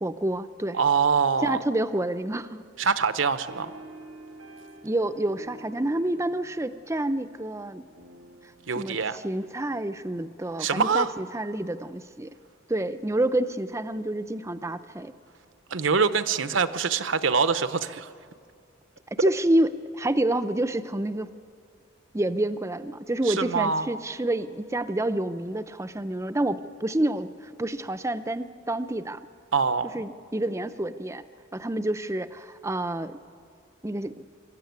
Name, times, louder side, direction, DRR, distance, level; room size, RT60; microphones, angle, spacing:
voice 1, 0.0-0.8 1.4-2.6 4.8-7.8 8.8-12.3 12.7-15.1 19.2-21.3 22.1-27.3 27.6-29.2 29.9-31.2 31.5-33.2 33.8-34.2, right 1 dB, 15° right, 12 dB, 0.6 m, -28 dB
voice 2, 0.7-1.6 2.8-3.7 8.7-9.2 10.6-11.1 15.7-18.1 23.3-23.9 29.5-29.9, right 5 dB, 70° right, 12 dB, 0.8 m, -24 dB
sound 1, 3.5-10.3, right 2 dB, 90° right, 1.6 m, -49 dB
24.5 x 13.5 x 9.4 m, 2.2 s
head